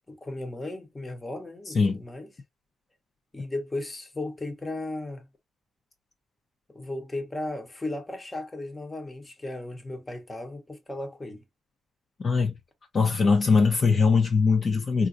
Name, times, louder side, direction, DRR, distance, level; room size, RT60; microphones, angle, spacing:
voice 1, 0.1-2.3 3.3-5.3 6.7-11.4, left 2 dB, 15° left, 1.0 m, -35 dB
voice 2, 12.2-12.5 12.9-15.1, left 4 dB, 40° left, 0.7 m, -21 dB
3.8 x 2.5 x 2.6 m
cardioid pair, 90°, 0 cm